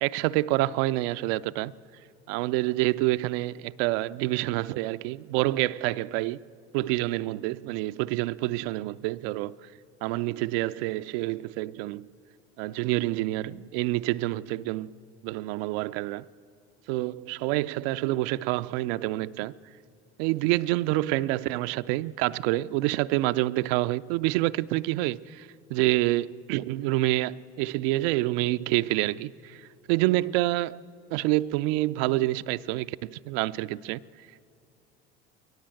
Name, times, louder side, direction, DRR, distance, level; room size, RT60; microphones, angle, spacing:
voice 1, 0.0-1.7 2.3-6.4 6.7-9.6 10.0-12.1 12.6-14.9 15.2-16.3 16.9-19.5 20.2-30.8 31.1-34.0, right 18 dB, 70° right, 0.5 m, -27 dB
21.5 x 18.5 x 7.7 m
hypercardioid pair, 80°, 32 cm